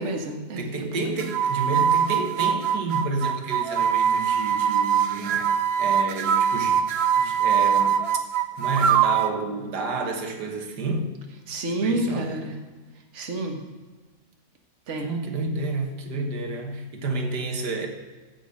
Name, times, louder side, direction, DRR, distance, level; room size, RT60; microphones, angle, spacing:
voice 1, 0.0-1.1 11.5-12.6 13.1-13.6 14.9-15.1, right 1 dB, 50° right, 2 dB, 1.6 m, -29 dB
voice 2, 0.6-6.9 7.2-8.0 8.6-11.1 11.8-12.3 15.0-17.9, right 3 dB, 90° right, 3 dB, 1.9 m, -30 dB
sound 1, 1.2-9.4, right 8 dB, 70° right, 0.5 m, -22 dB
15.5 x 6.2 x 5.2 m, 1.3 s
omnidirectional pair, 1.7 m